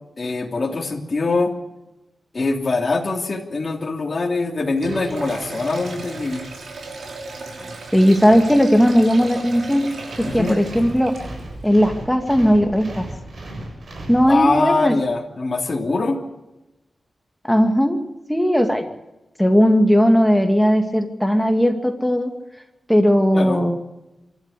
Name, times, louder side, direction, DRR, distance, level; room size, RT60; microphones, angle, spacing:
voice 1, 0.2-1.5 2.3-6.5 7.6-7.7 10.2-10.6 14.3-16.2 23.3-23.6, left 3 dB, 40° left, 1 dB, 3.0 m, -23 dB
Sink (filling or washing), 4.7-11.5, right 2 dB, 70° right, 6.2 m, -35 dB
voice 2, 7.9-9.8 10.3-11.2 11.6-13.1 14.1-14.9 17.4-18.0 18.3-18.9 19.4-22.3 22.9-23.8, equal, 5° left, 5 dB, 2.3 m, -17 dB
sound 1, 10.0-14.8, right 1 dB, 50° right, 7.4 m, -35 dB
25.5 x 13.5 x 8.5 m, 0.99 s
wide cardioid pair, 140°, 0 cm